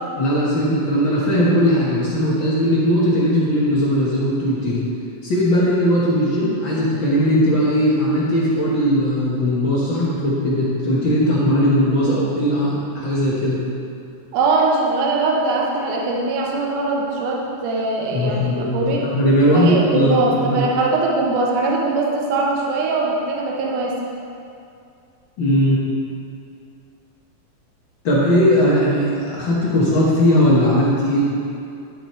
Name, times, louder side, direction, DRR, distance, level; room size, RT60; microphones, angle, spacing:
voice 1, 0.2-4.9 5.2-13.6 18.1-20.7 25.4-25.8 28.0-31.3, equal, 55° left, -6 dB, 1.5 m, -18 dB
voice 2, 14.3-19.0 19.5-24.0, right 3 dB, 80° right, -1 dB, 2.5 m, -21 dB
11.5 x 6.6 x 4.4 m, 2.5 s
omnidirectional pair, 3.6 m